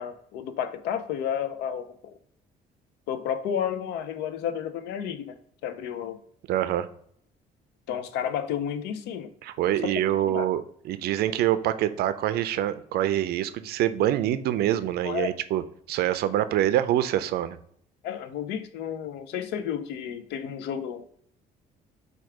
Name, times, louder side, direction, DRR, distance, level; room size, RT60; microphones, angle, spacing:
voice 1, 0.0-2.2 3.1-6.2 7.9-9.3 9.8-10.5 15.0-15.3 18.0-21.0, left 8 dB, 85° left, 11 dB, 0.5 m, -32 dB
voice 2, 6.5-6.9 9.4-15.6 15.9-17.6, right 12 dB, 70° right, 13 dB, 0.4 m, -25 dB
4.5 x 2.3 x 4.8 m, 0.65 s
cardioid pair, 110°, 17 cm